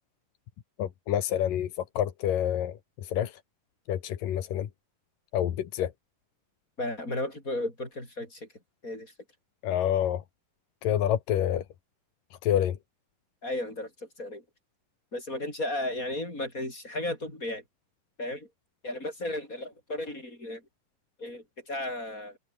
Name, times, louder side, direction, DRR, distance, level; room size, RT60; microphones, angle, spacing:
voice 1, 0.8-1.7 2.0-3.3 3.9-4.7 5.3-5.9 9.6-10.2 10.8-11.6 12.4-12.8, left 11 dB, 85° left, 3.4 m, -27 dB
voice 2, 6.8-8.5 8.8-9.1 13.4-14.4 15.1-17.6 18.2-18.5 18.8-20.6 21.2-22.4, left 1 dB, 25° left, 8.5 m, -34 dB
omnidirectional pair, 3.8 m